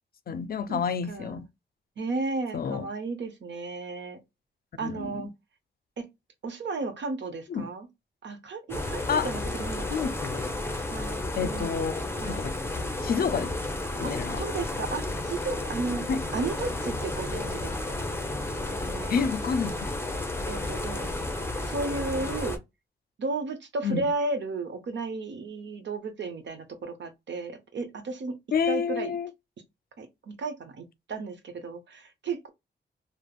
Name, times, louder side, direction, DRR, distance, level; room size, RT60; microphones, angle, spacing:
voice 1, 0.3-1.5 2.5-2.9 4.8-5.2 7.5-7.7 9.1-9.3 9.9-10.5 11.4-12.5 13.0-13.5 14.0-14.4 16.1-16.2 19.1-19.8 23.8-24.1 28.5-29.3, left 6 dB, 50° left, 0.4 m, -29 dB
voice 2, 1.1-1.4 2.0-4.2 4.8-5.3 6.0-6.1 6.4-7.9 8.2-10.1 10.9-11.7 12.2-12.5 14.0-16.0 16.3-18.0 18.6-19.2 20.5-21.1 21.6-22.6 23.2-28.4 28.6-29.1 30.0-32.5, right 3 dB, 70° right, 0.8 m, -34 dB
sound 1, 8.7-22.6, left 2 dB, 10° left, 0.6 m, -32 dB
Bass guitar, 15.7-19.2, right 4 dB, 20° right, 0.9 m, -50 dB
3.3 x 2.0 x 2.3 m
wide cardioid pair, 100°, 19 cm